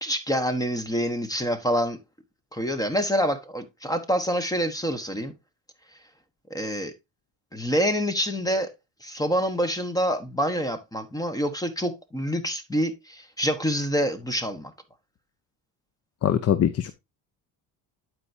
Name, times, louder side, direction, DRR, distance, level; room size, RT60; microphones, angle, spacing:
voice 1, 0.0-2.0 2.5-5.3 6.5-6.9 7.5-8.7 9.0-14.7, equal, 10° left, 1.2 m, -26 dB
voice 2, 16.2-16.9, left 9 dB, 40° left, 0.7 m, -22 dB
11.0 x 4.8 x 2.7 m
cardioid pair, 95°, 37 cm